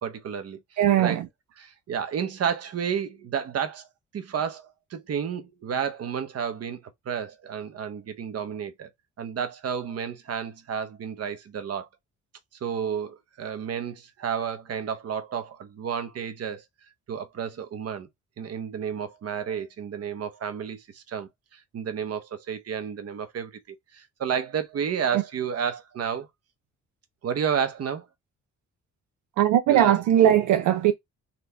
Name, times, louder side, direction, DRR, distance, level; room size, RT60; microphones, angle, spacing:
voice 1, 0.0-0.6 1.0-1.2 1.6-3.9 4.1-6.8 7.0-8.9 9.2-11.9 12.6-16.6 17.1-18.1 18.4-26.3 27.2-28.0 29.7-29.9, right 7 dB, 55° right, 1.0 m, -31 dB
voice 2, 0.8-1.3 25.1-25.2 29.4-30.9, right 11 dB, 75° right, 0.6 m, -19 dB
4.2 x 2.8 x 3.3 m
cardioid pair, 90°, 30 cm